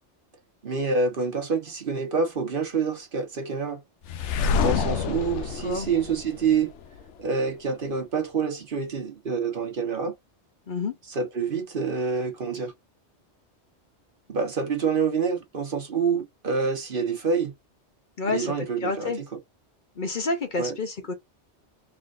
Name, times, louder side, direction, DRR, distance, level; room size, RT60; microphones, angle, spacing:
voice 1, 0.6-3.8 4.6-6.7 7.2-10.1 11.1-12.7 14.3-17.5 18.2-19.1 20.6-20.7, right 5 dB, 50° right, 1.1 m, -27 dB
sound 1, 4.1-7.0, left 5 dB, 85° left, 0.9 m, -27 dB
voice 2, 10.7-11.0 18.2-19.2 20.0-21.1, left 3 dB, 50° left, 0.8 m, -29 dB
3.8 x 3.3 x 2.5 m
omnidirectional pair, 1.2 m